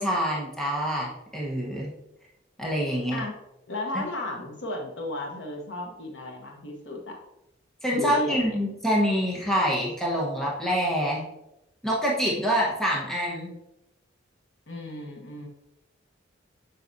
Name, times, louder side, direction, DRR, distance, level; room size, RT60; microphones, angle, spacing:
voice 1, 0.0-1.9 2.6-3.2 3.9-4.0 7.8-11.2 11.8-13.5, equal, ahead, -4 dB, 1.1 m, -26 dB
voice 2, 3.7-7.2 7.9-8.5 14.7-15.5, left 1 dB, 65° left, 1 dB, 1.1 m, -34 dB
7.7 x 5.8 x 2.7 m, 0.88 s
head